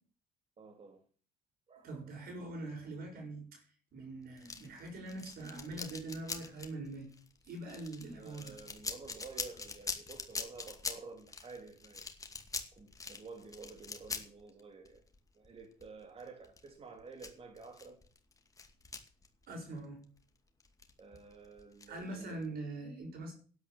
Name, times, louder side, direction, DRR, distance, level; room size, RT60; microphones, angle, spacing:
voice 1, 0.6-1.0 1.7-2.1 8.1-12.0 12.7-15.0 15.3-18.0 21.0-22.4, right 4 dB, 35° right, 3.0 m, -51 dB
voice 2, 1.8-3.6 3.9-7.1 7.5-8.6 19.5-20.0 21.9-23.3, right 2 dB, 60° right, 6.5 m, -43 dB
sound 1, 4.4-20.2 20.6-22.5, left 4 dB, 20° left, 2.4 m, -44 dB
12.0 x 9.7 x 7.6 m
cardioid pair, 110°, 17 cm